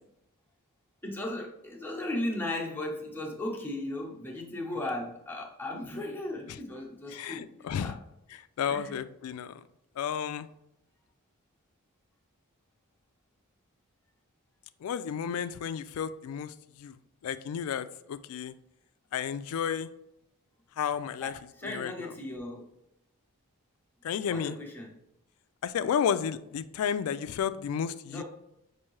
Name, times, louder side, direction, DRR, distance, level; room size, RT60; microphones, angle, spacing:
voice 1, 1.0-7.5 7.8-7.9 8.7-9.0 21.2-22.7 24.3-24.9 28.1-28.2, left 1 dB, 10° left, -2 dB, 0.9 m, -36 dB
voice 2, 7.1-8.0 8.3-9.6 10.0-10.5 14.8-16.9 17.2-18.5 19.1-19.9 20.8-21.3 21.6-22.1 24.0-24.6 25.6-28.2, left 8 dB, 75° left, 13 dB, 0.3 m, -32 dB
5.7 x 2.7 x 3.1 m, 0.81 s
head